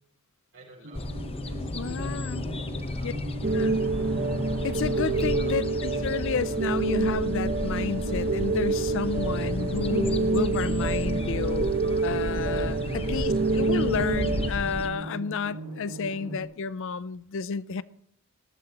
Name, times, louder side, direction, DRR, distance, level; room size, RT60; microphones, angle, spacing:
voice 1, 0.5-1.1 1.4-2.3 2.7-3.3 5.4-5.7 12.9-13.4, right 1 dB, 60° right, 5.8 m, -49 dB
sound 1, 0.8-16.4, right 1 dB, 90° right, 5.6 m, -41 dB
sound 2, 0.9-14.9, left 1 dB, 25° left, 0.7 m, -33 dB
voice 2, 1.8-2.4 3.0-3.1 3.5-3.8 4.6-11.7 12.0-17.8, left 6 dB, 60° left, 0.4 m, -31 dB
sound 3, 3.4-14.5, right 3 dB, 40° right, 0.7 m, -27 dB
19.0 x 13.0 x 2.9 m
head